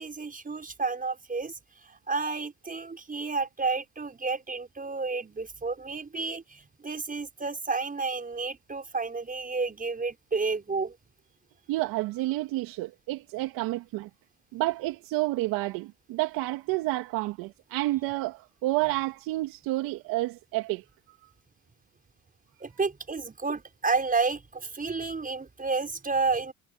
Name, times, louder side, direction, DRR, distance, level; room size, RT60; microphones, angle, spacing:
voice 1, 0.0-1.5 1.8-11.0 22.6-26.5, right 4 dB, 25° right, 5.7 m, -31 dB
voice 2, 11.7-14.1 14.5-20.8, right 19 dB, 75° right, 2.6 m, -30 dB
supercardioid pair, 70°, 35 cm